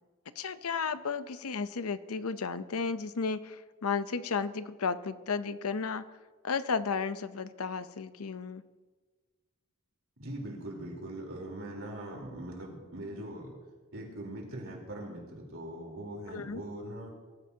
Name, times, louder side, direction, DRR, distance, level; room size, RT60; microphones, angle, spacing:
voice 1, 0.4-6.0 6.4-8.6 16.3-16.6, left 5 dB, 85° left, 13 dB, 0.7 m, -33 dB
voice 2, 10.2-13.6 13.9-17.1, right 1 dB, 65° right, -1 dB, 3.8 m, -41 dB
23.5 x 14.5 x 2.8 m, 1.3 s
head